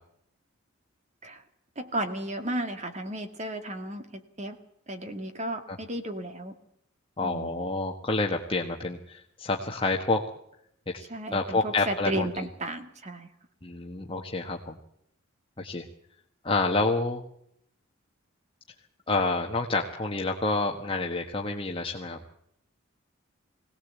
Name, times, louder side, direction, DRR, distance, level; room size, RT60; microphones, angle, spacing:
voice 1, 1.8-4.6 4.9-6.5 7.2-7.5 11.1-13.3, right 1 dB, 35° right, 8 dB, 2.2 m, -34 dB
voice 2, 7.2-10.2 10.9-12.5 13.6-14.8 15.6-15.9 16.4-17.2 19.1-22.2, left 3 dB, 25° left, 1 dB, 1.4 m, -28 dB
21.5 x 18.0 x 8.3 m, 0.73 s
head